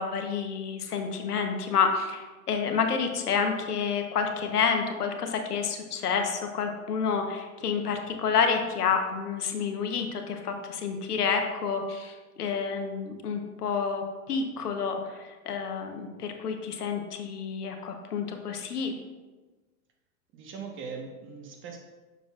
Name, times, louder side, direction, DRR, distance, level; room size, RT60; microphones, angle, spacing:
voice 1, 0.0-18.9, left 6 dB, 90° left, 4 dB, 1.0 m, -29 dB
voice 2, 20.3-21.8, right 5 dB, 25° right, 2 dB, 1.1 m, -40 dB
6.8 x 6.4 x 2.4 m, 1.2 s
hypercardioid pair, 120°, 45 cm